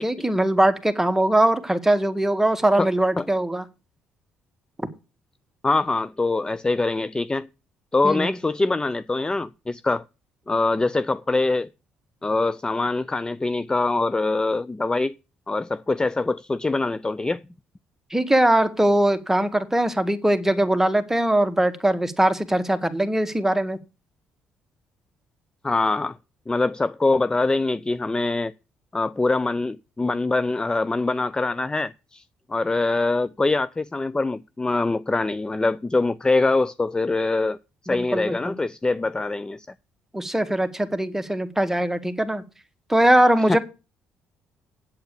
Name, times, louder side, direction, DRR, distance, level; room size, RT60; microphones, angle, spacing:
voice 1, 0.0-3.6 8.0-8.4 18.1-23.8 37.9-38.6 40.1-42.4 42.9-43.6, right 1 dB, 10° right, 1.8 m, -21 dB
voice 2, 5.6-7.5 7.9-10.0 10.5-11.7 12.2-15.1 15.5-17.4 25.6-26.2 26.5-28.5 28.9-32.2 32.5-37.6 37.8-39.7 43.5-43.6, left 3 dB, 15° left, 0.5 m, -23 dB
8.7 x 8.0 x 6.7 m
supercardioid pair, 65°, 5 cm